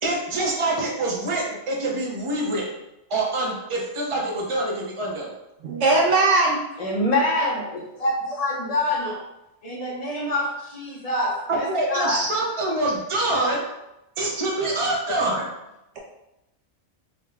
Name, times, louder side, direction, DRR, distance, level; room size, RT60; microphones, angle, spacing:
voice 1, 0.0-2.7 3.1-5.3 11.5-13.6 14.2-15.5, right 2 dB, 35° right, -2 dB, 0.6 m, -25 dB
voice 2, 5.6-6.6, right 3 dB, 75° right, -2 dB, 0.9 m, -19 dB
voice 3, 6.8-9.2 9.6-12.2, left 1 dB, 40° left, -2 dB, 0.7 m, -25 dB
3.7 x 2.1 x 3.3 m, 0.90 s
omnidirectional pair, 1.2 m